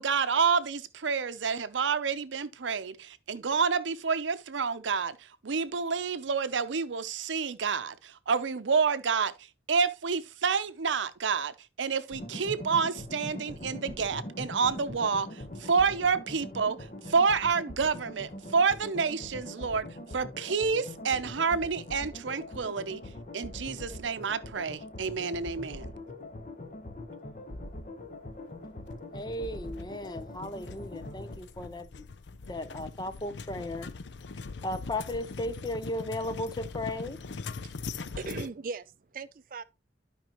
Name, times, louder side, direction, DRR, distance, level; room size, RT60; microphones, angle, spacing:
voice 1, 0.0-9.3 9.7-19.9 20.1-23.0 23.3-25.9, right 5 dB, 85° right, 0.7 m, -29 dB
sound 1, 12.1-31.4, left 1 dB, 40° left, 1.0 m, -42 dB
sound 2, 28.9-38.5, left 4 dB, 75° left, 0.5 m, -41 dB
voice 2, 29.1-31.9 32.5-33.9 34.6-37.2, left 1 dB, 20° left, 0.6 m, -35 dB
voice 3, 37.6-38.9 39.1-39.6, right 4 dB, 45° right, 0.4 m, -39 dB
12.0 x 5.2 x 3.0 m
head